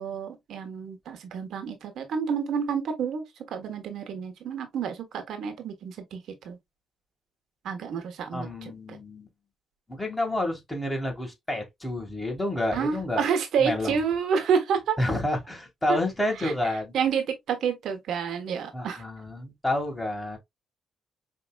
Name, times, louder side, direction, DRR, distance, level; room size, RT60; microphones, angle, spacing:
voice 1, 0.0-6.6 7.6-9.0 12.7-15.0 15.9-16.0 16.4-16.5 16.9-19.0, right 7 dB, 70° right, 1.2 m, -29 dB
voice 2, 8.3-9.3 9.9-13.2 13.6-14.0 15.0-16.9 18.7-20.4, left 1 dB, 10° left, 1.8 m, -29 dB
5.3 x 2.9 x 2.3 m
cardioid pair, 90°, 0 cm